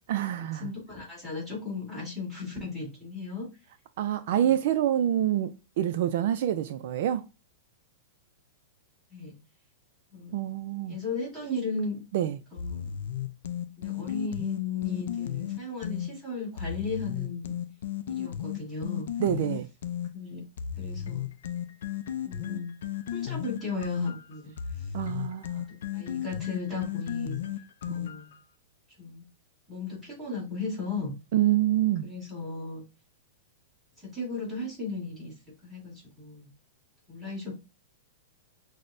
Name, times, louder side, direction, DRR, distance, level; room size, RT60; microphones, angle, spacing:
voice 1, 0.1-0.7 4.0-5.5 5.8-7.2 10.3-11.0 12.1-12.4 19.2-19.7 24.9-25.7 31.3-32.1, right 11 dB, 55° right, 0.3 m, -26 dB
voice 2, 0.6-3.5 4.3-4.5 9.1-9.3 10.1-10.3 10.9-12.0 12.5-12.9 13.8-17.5 18.1-19.1 20.1-20.4 20.8-21.3 22.2-22.7 23.1-24.9 25.9-27.4 27.9-28.3 29.0-29.2 29.7-31.1 32.0-32.8 34.0-35.3 35.6-36.5 37.1-37.5, left 3 dB, ahead, 1.7 m, -35 dB
sound 1, 12.6-16.1 16.6-20.1 20.6-28.4, left 10 dB, 70° left, 0.4 m, -34 dB
6.1 x 2.1 x 2.6 m
supercardioid pair, 160°, 0 cm